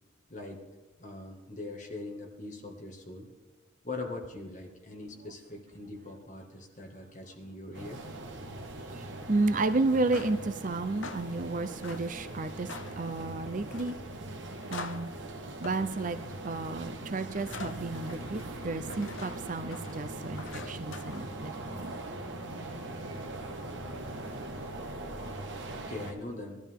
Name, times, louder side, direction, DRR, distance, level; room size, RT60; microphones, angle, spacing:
voice 1, 1.0-3.3 3.8-8.0 25.7-26.6, left 2 dB, 40° left, 1 dB, 1.9 m, -41 dB
sound 1, 7.7-26.1, right 2 dB, 65° right, 1.5 m, -41 dB
voice 2, 8.7-12.7 13.0-14.0 14.7-15.1 15.6-21.9, right 3 dB, 40° right, 9 dB, 0.5 m, -32 dB
sound 2, 9.9-21.8, left 4 dB, 70° left, 0.8 m, -47 dB
19.5 x 12.5 x 3.7 m, 1.2 s
head